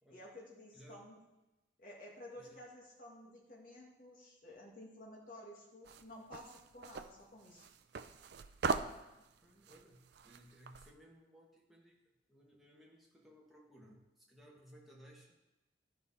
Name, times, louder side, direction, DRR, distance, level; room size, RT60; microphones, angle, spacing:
voice 1, 0.1-1.2 1.8-7.7, left 1 dB, 50° left, -2 dB, 1.9 m, -53 dB
voice 2, 0.7-1.1 2.4-2.6 9.1-12.0 12.3-15.4, equal, ahead, -4 dB, 1.5 m, -60 dB
sound 1, 5.9-10.9, right 4 dB, 65° right, 0.4 m, -41 dB
12.5 x 5.5 x 4.1 m, 1.0 s
head